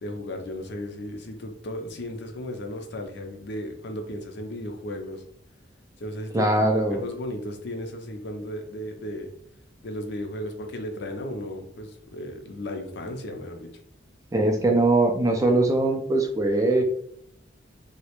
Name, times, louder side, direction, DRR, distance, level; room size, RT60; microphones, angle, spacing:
voice 1, 0.0-5.2 6.0-6.5 6.9-9.3 9.8-13.7, left 1 dB, 60° left, 4 dB, 0.5 m, -35 dB
voice 2, 6.3-7.0 14.3-16.8, right 2 dB, 20° right, 2 dB, 0.3 m, -21 dB
2.3 x 2.0 x 2.9 m, 0.68 s
head